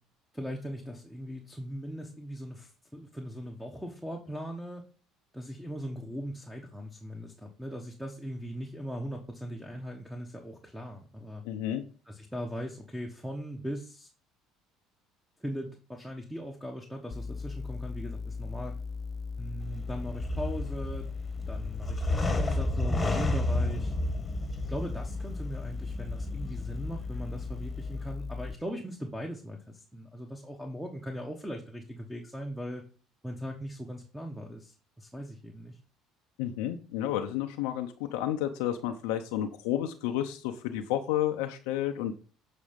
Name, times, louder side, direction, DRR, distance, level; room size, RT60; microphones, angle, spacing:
voice 1, 0.3-4.8 5.3-11.4 12.0-14.1 15.4-18.8 19.4-21.1 21.4-23.9 24.7-32.8 33.2-35.8, equal, 5° right, 2 dB, 1.2 m, -39 dB
voice 2, 11.4-11.8 36.4-42.1, left 11 dB, 85° left, 5 dB, 0.6 m, -31 dB
sound 1, 17.1-28.5, left 4 dB, 45° left, 0.6 m, -38 dB
sound 2, 19.6-28.1, left 1 dB, 20° left, 1.3 m, -32 dB
7.4 x 4.2 x 5.2 m, 0.39 s
supercardioid pair, 80°, 0 cm